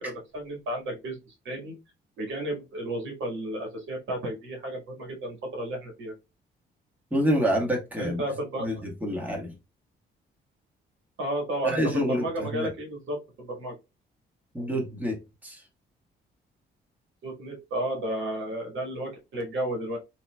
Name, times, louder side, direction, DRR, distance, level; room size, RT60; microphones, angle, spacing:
voice 1, 0.0-1.8 2.2-6.1 8.0-8.8 11.2-13.8 17.2-20.0, right 1 dB, 75° right, 1.7 m, -33 dB
voice 2, 7.1-8.2 8.6-9.5 11.6-12.7 14.5-15.6, equal, 10° right, 1.4 m, -27 dB
3.0 x 2.9 x 2.2 m
cardioid pair, 90°, 20 cm